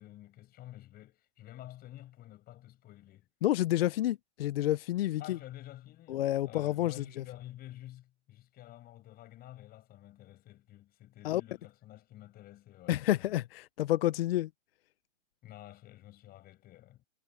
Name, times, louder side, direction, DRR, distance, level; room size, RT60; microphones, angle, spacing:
voice 1, 0.0-3.3 5.2-13.4 15.4-17.0, left 14 dB, 25° left, 6.6 m, -50 dB
voice 2, 3.4-5.4 6.1-7.2 11.2-11.4 12.9-14.5, left 14 dB, 55° left, 1.0 m, -29 dB
hypercardioid pair, 135°, 36 cm